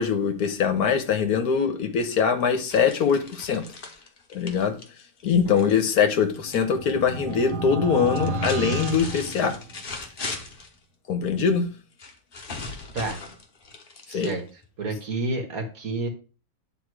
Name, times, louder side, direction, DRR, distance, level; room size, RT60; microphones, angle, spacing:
voice 1, 0.0-3.6 4.3-4.8 5.2-9.6 11.1-11.7 14.1-14.3, left 6 dB, 70° left, 1.4 m, -23 dB
sound 1, 2.7-6.6 6.9-7.5 8.1-10.7 12.0-14.7, left 3 dB, 40° left, 1.2 m, -38 dB
voice 2, 5.4-5.8 12.9-13.2 14.1-14.4 14.8-16.1, right 2 dB, 60° right, 1.9 m, -30 dB
sound 2, 6.3-10.0, right 2 dB, 80° right, 1.5 m, -31 dB
9.3 x 3.8 x 4.6 m
omnidirectional pair, 1.7 m